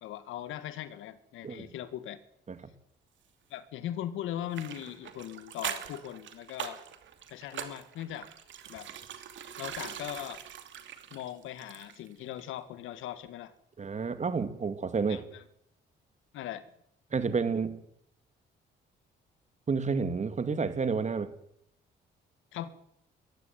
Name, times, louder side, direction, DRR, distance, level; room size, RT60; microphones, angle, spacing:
voice 1, 0.0-2.2 3.5-6.8 7.3-8.3 8.7-8.9 9.6-10.4 11.1-13.5 15.1-15.4 16.3-16.7 22.5-22.7, left 12 dB, 90° left, 14 dB, 1.8 m, -39 dB
sound 1, 4.5-12.1 12.4-12.5, right 9 dB, 70° right, 2.7 m, -42 dB
voice 2, 13.8-15.2 17.1-17.8 19.7-21.3, right 5 dB, 35° right, 11 dB, 2.6 m, -30 dB
21.5 x 14.5 x 9.3 m, 0.71 s
cardioid pair, 90°, 20 cm